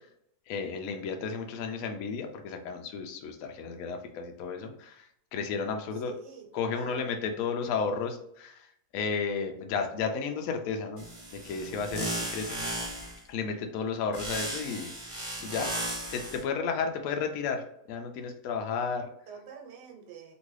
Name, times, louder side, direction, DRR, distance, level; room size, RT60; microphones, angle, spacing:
voice 1, 0.5-5.1 5.3-6.1 6.5-8.6 8.9-11.1 11.3-12.6 13.3-14.9 15.4-15.7 16.1-19.1, left 5 dB, 70° left, 4 dB, 0.9 m, -33 dB
voice 2, 5.9-6.5 6.7-7.1 19.3-20.3, right 6 dB, 85° right, 1 dB, 1.4 m, -46 dB
sound 1, 11.0-13.2 14.1-16.4, right 1 dB, 60° right, 0.3 m, -35 dB
3.0 x 2.6 x 3.1 m, 0.72 s
omnidirectional pair, 1.8 m